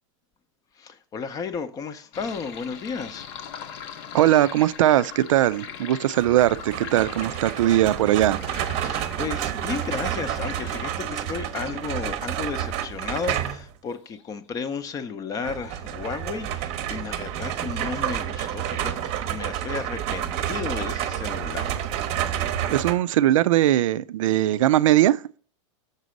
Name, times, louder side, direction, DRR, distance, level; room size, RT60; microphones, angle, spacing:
voice 1, 0.7-3.3 8.8-21.7, left 5 dB, 20° left, 0.6 m, -33 dB
Sink (filling or washing), 2.1-10.8, left 8 dB, 50° left, 0.8 m, -41 dB
voice 2, 4.1-8.4 22.7-25.4, right 13 dB, 85° right, 0.4 m, -20 dB
sound 1, 6.2-13.7 15.5-23.0, right 10 dB, 40° right, 0.8 m, -29 dB
sound 2, 6.6-7.0 7.7-7.9 8.9-9.3 10.7-11.2 11.5-11.6 12.5-12.9 13.8-14.7 15.6-16.0, left 7 dB, 75° left, 1.6 m, -52 dB
6.7 x 4.0 x 6.2 m
supercardioid pair, 140°, 16 cm